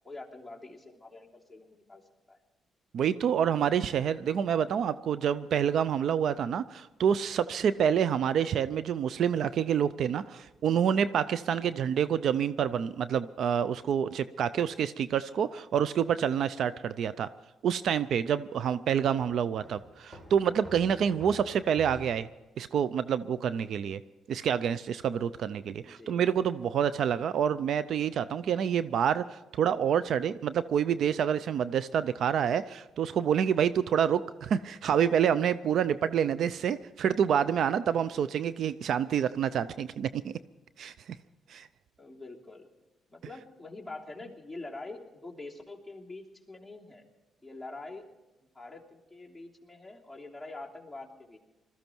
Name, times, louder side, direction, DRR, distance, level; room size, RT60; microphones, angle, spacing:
voice 1, 0.0-2.0 2.3-2.4 25.8-26.2 26.9-27.1 42.0-42.7 43.1-47.0 47.4-48.0 48.5-51.4, left 2 dB, ahead, -3 dB, 3.1 m, -45 dB
voice 2, 2.9-17.3 17.6-22.3 22.6-24.0 24.3-40.3 40.8-40.9 41.5-41.7, right 8 dB, 65° right, 15 dB, 0.5 m, -27 dB
Walk footsteps, 19.0-22.4, left 1 dB, 20° right, 4.5 m, -49 dB
21.0 x 14.0 x 4.6 m, 1.1 s
cardioid pair, 90°, 0 cm